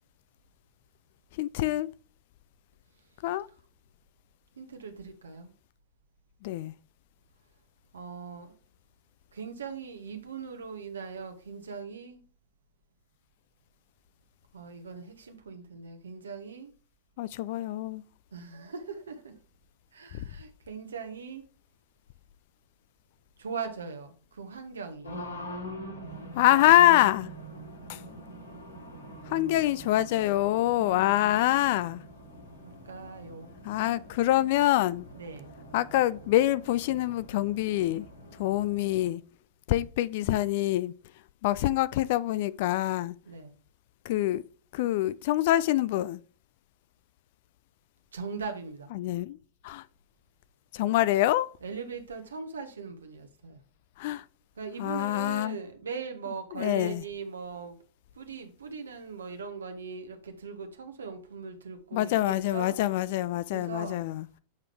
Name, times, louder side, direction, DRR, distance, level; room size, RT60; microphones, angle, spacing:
voice 1, 1.3-1.9 3.2-3.5 6.4-6.7 17.2-18.0 20.1-20.3 26.3-27.3 27.9-28.0 29.2-32.0 33.6-35.1 35.7-38.1 38.3-39.2 39.7-43.2 44.0-44.4 44.7-46.2 48.9-49.4 49.6-49.9 50.7-51.5 54.0-54.3 54.8-55.6 56.5-57.0 61.9-64.3, left 14 dB, 50° left, 0.3 m, -25 dB
voice 2, 4.6-5.5 7.9-8.5 9.3-12.2 14.5-16.7 18.3-19.4 19.9-21.4 23.4-25.1 32.6-33.6 35.2-35.6 43.3-43.6 48.1-48.9 51.6-53.6 54.6-57.7 58.1-62.7 63.5-64.0, right 5 dB, 70° right, 1.1 m, -40 dB
Race car auto racing, 25.0-39.1, equal, 80° left, 2.9 m, -44 dB
8.1 x 4.9 x 3.3 m
figure-of-eight pair, 90°, 0 cm